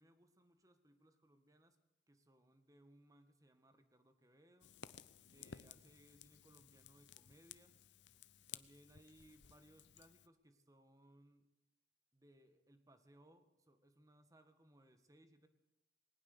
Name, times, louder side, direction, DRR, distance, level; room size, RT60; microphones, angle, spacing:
voice 1, 0.0-1.8 2.1-4.7 5.3-7.7 8.5-11.5 12.1-15.5, right 1 dB, 20° right, 8 dB, 1.8 m, -67 dB
Fire, 4.6-10.3, left 8 dB, 85° left, 0.8 m, -57 dB
20.0 x 18.5 x 6.9 m, 0.90 s
head